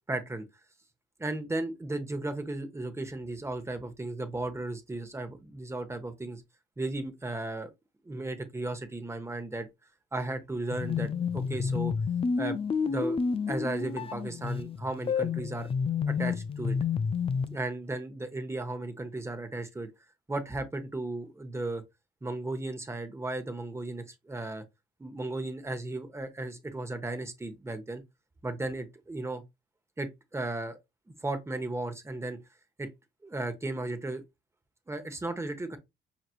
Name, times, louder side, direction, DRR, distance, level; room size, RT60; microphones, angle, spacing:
voice 1, 0.1-0.5 1.2-6.4 6.8-7.7 8.0-9.7 10.1-11.9 12.4-12.6 12.8-13.2 13.5-15.7 16.1-16.8 17.5-19.9 20.3-21.8 22.2-24.6 25.0-28.0 28.4-29.4 30.0-30.8 31.2-32.4 32.8-32.9 33.2-34.2 34.9-35.8, right 2 dB, 15° right, 1.0 m, -35 dB
sound 1, 10.7-17.6, left 6 dB, 30° left, 0.4 m, -30 dB
5.0 x 3.0 x 2.4 m
cardioid pair, 90°, 20 cm